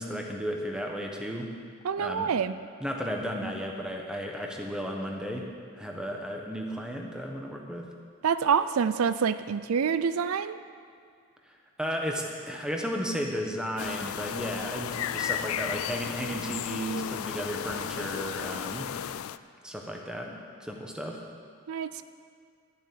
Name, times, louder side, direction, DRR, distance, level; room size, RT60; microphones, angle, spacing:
voice 1, 0.0-1.5 2.0-2.3 2.8-5.5 5.7-7.9 11.8-18.9 19.6-21.2, equal, 5° right, 1 dB, 1.1 m, -34 dB
voice 2, 1.8-2.5 8.2-10.6 21.7-22.0, right 6 dB, 85° right, 13 dB, 0.4 m, -26 dB
sound 1, 13.8-19.4, left 9 dB, 80° left, 0.4 m, -34 dB
12.5 x 7.4 x 8.6 m, 2.2 s
head